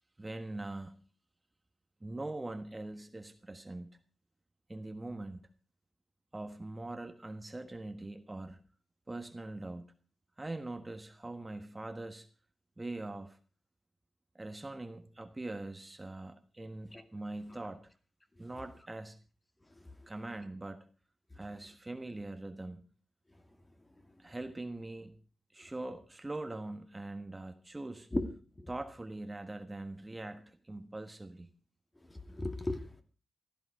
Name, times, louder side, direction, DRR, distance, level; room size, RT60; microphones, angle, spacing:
voice 1, 0.2-1.0 2.0-4.0 4.7-5.5 6.3-8.6 9.1-9.9 10.4-12.3 12.8-13.4 14.3-17.9 18.4-19.2 20.1-20.9 21.3-22.8 24.2-25.2 25.5-28.1 28.7-31.5, right 2 dB, 20° right, 7 dB, 1.4 m, -42 dB
voice 2, 32.1-33.0, left 2 dB, 20° left, 6 dB, 2.3 m, -35 dB
16.0 x 13.0 x 4.9 m, 0.38 s
cardioid pair, 80°, 0 cm